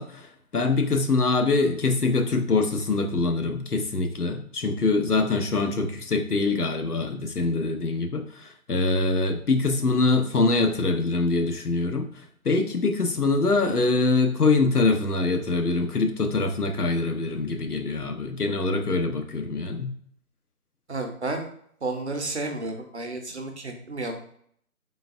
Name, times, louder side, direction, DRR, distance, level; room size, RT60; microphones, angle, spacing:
voice 1, 0.0-12.1 12.4-19.9, left 3 dB, 90° left, 5 dB, 0.8 m, -24 dB
voice 2, 20.9-21.5 21.8-24.2, right 2 dB, 50° right, 3 dB, 0.7 m, -31 dB
3.9 x 3.4 x 2.5 m, 0.63 s
figure-of-eight pair, 155°, 44 cm